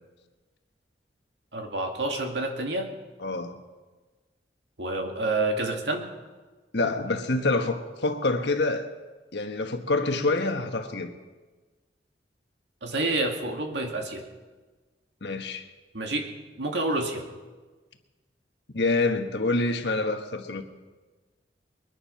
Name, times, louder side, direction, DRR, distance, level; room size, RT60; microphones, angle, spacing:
voice 1, 1.5-2.9 4.8-6.1 12.8-14.3 15.9-16.3 16.6-17.2, right 2 dB, 80° right, 2.3 m, -28 dB
voice 2, 3.2-3.6 6.7-8.9 9.3-11.1 15.2-15.7 18.7-20.6, left 2 dB, 70° left, 1.4 m, -26 dB
22.0 x 10.5 x 5.7 m
head